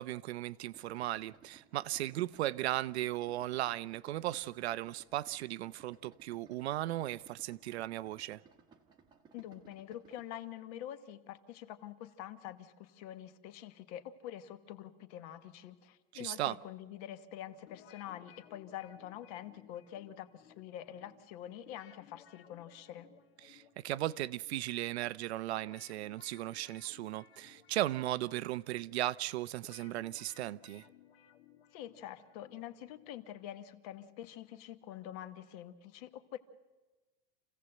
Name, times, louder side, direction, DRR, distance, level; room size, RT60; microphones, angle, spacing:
voice 1, 0.0-8.4 16.1-16.6 23.4-30.8, right 15 dB, 85° right, 0.8 m, -36 dB
Idling, 0.7-10.3, right 6 dB, 15° right, 1.1 m, -61 dB
voice 2, 9.3-23.1 31.7-36.4, left 11 dB, 35° left, 1.1 m, -46 dB
sound 1, 17.7-33.6, left 10 dB, 70° left, 2.2 m, -62 dB
28.0 x 16.5 x 7.8 m
supercardioid pair, 180°, 32 cm